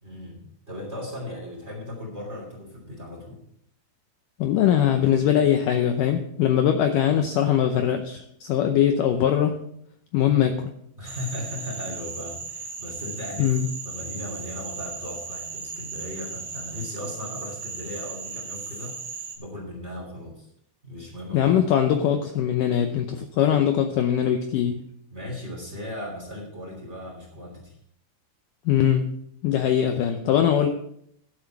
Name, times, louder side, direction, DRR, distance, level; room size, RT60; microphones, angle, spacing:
voice 1, 0.0-3.4 11.0-13.5 13.8-20.5 20.8-21.6 25.1-27.8, left 1 dB, 20° right, -1 dB, 2.8 m, -37 dB
voice 2, 4.4-9.6 10.1-10.7 13.4-13.7 21.3-24.8 28.7-29.1 29.4-30.7, left 9 dB, 75° left, 6 dB, 2.0 m, -21 dB
Frog, 11.1-19.4, right 4 dB, 50° right, 1.7 m, -36 dB
12.5 x 7.9 x 4.7 m, 0.71 s
omnidirectional pair, 4.5 m